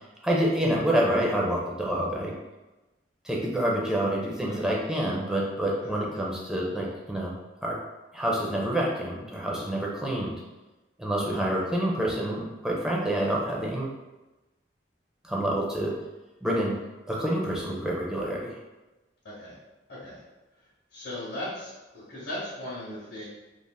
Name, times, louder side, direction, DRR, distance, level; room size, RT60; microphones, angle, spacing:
voice 1, 0.2-2.3 3.2-7.3 7.6-7.8 8.1-10.4 11.0-13.9 15.2-15.9 16.4-16.7 17.1-18.5, right 1 dB, 5° right, -4 dB, 0.5 m, -27 dB
voice 2, 19.2-19.6 19.9-20.2 20.9-23.3, left 1 dB, 75° left, -9 dB, 1.0 m, -38 dB
3.3 x 2.4 x 2.2 m, 1.1 s
head